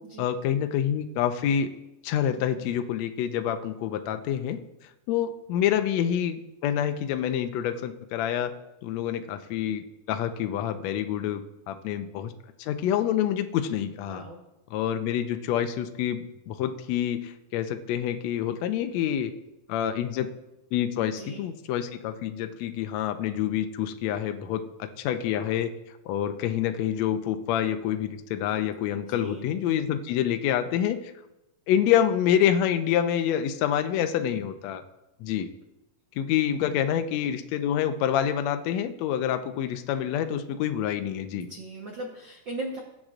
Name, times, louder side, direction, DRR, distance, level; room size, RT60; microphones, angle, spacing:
voice 1, 0.2-1.7 2.0-4.6 5.1-8.5 8.8-11.4 11.7-12.3 12.6-14.2 14.7-19.3 19.7-20.3 20.7-25.7 26.0-31.1 31.7-34.8 35.2-35.5 36.2-41.5, left 10 dB, 85° left, 7 dB, 1.5 m, -27 dB
voice 2, 13.9-14.4 21.0-21.5 28.9-29.5 41.3-42.8, right 2 dB, 90° right, 0 dB, 1.0 m, -39 dB
21.5 x 8.6 x 2.5 m, 0.94 s
omnidirectional pair, 4.0 m